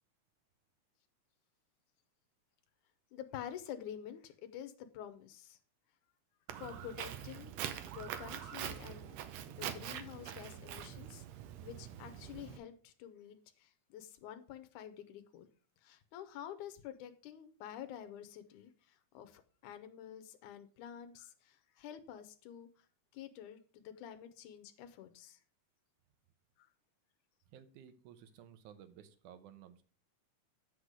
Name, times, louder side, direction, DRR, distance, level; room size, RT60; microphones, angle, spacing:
voice 1, 3.1-5.6 6.6-7.5 7.8-9.2 9.5-11.2 11.6-15.5 15.8-22.7 23.1-25.4 26.6-26.7, left 10 dB, 90° left, 2.3 m, -49 dB
Walk footsteps, 6.5-12.6, right 10 dB, 70° right, 1.8 m, -44 dB
voice 2, 27.5-29.8, right 9 dB, 85° right, 2.3 m, -56 dB
8.1 x 6.1 x 4.9 m
omnidirectional pair, 3.4 m